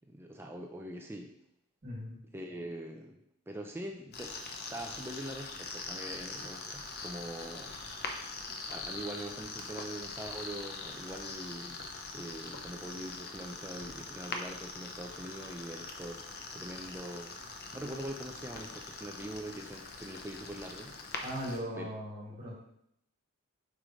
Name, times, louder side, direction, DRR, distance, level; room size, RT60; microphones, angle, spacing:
voice 1, 0.1-1.3 2.3-4.4 4.7-7.8 8.7-11.8 12.1-16.2 16.5-21.2 21.7-21.9 22.3-22.4, right 1 dB, 10° right, 2 dB, 0.5 m, -43 dB
voice 2, 1.8-2.2 21.2-22.5, equal, 45° right, -8 dB, 2.3 m, -38 dB
sound 1, 4.1-21.6, left 3 dB, 50° left, 0.8 m, -43 dB
7.9 x 4.9 x 3.1 m, 0.74 s
head